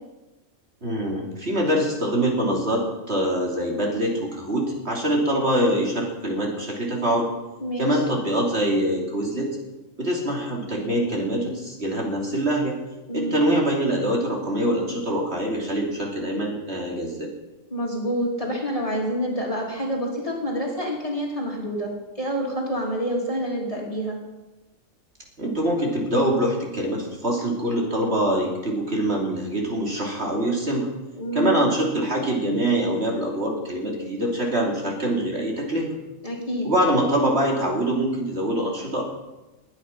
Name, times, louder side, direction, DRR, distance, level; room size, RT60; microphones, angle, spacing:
voice 1, 0.8-7.3 7.8-9.6 10.0-12.8 13.1-17.3 25.4-30.9 31.3-36.0 36.6-39.0, right 1 dB, 50° right, -1 dB, 3.3 m, -24 dB
voice 2, 7.6-8.0 13.1-13.4 17.7-24.2 31.1-31.6 36.2-36.7, equal, 25° left, -2 dB, 3.4 m, -27 dB
21.0 x 9.5 x 5.9 m, 1.1 s
omnidirectional pair, 1.4 m